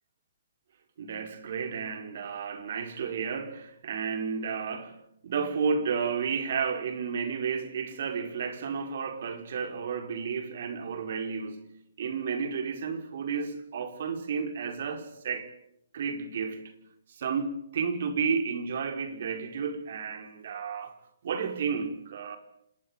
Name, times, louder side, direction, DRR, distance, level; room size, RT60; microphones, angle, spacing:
voice 1, 1.0-5.0 5.2-11.6 12.0-15.5 15.9-16.7 17.1-21.0 21.2-22.4, right 6 dB, 60° right, 5.1 m, -32 dB
27.0 x 22.0 x 9.0 m
hypercardioid pair, 140°, 0 cm